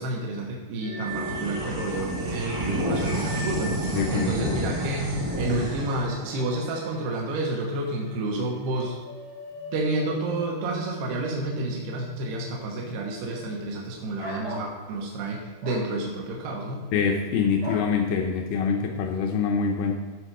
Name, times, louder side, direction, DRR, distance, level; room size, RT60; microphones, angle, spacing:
voice 1, 0.0-9.0 9.7-16.8, right 2 dB, 75° right, -1 dB, 3.1 m, -30 dB
sound 1, 0.8-7.7 7.9-8.1 8.6-14.0, right 1 dB, 75° left, 0.7 m, -40 dB
sound 2, 1.0-7.8, right 1 dB, 50° right, 0.9 m, -31 dB
voice 2, 3.9-4.6 16.9-19.9, left 6 dB, 90° left, 2 dB, 1.8 m, -25 dB
sound 3, 14.2-14.7 15.6-15.9 17.6-17.9, right 1 dB, 25° right, 0.6 m, -35 dB
15.0 x 5.3 x 4.7 m, 1.5 s
omnidirectional pair, 4.8 m